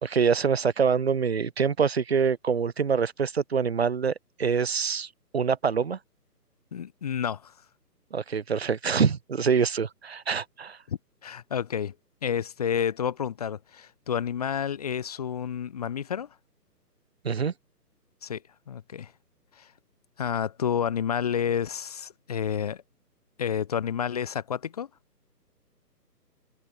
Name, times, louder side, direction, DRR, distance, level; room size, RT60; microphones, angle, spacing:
voice 1, 0.0-4.1 4.4-5.1 5.3-6.0 8.1-10.8 17.2-17.5, right 6 dB, 40° right, 0.8 m, -25 dB
voice 2, 6.7-7.5 10.9-11.9 12.2-16.3 18.2-18.4 18.7-19.1 19.6-19.7 20.2-22.8 23.4-24.9, left 8 dB, 25° left, 1.3 m, -30 dB
open air
hypercardioid pair, 160°, 49 cm